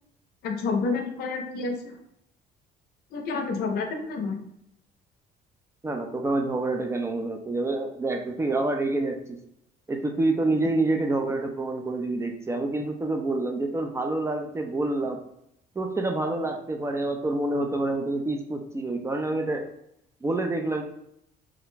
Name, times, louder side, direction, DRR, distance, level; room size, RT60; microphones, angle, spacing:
voice 1, 0.4-2.0 3.1-4.4, left 4 dB, 70° left, 4 dB, 0.5 m, -29 dB
voice 2, 5.8-9.4 9.9-15.2 15.8-19.7 20.2-20.8, right 2 dB, 15° right, 3 dB, 0.3 m, -27 dB
2.4 x 2.1 x 3.1 m, 0.78 s
cardioid pair, 110°, 17 cm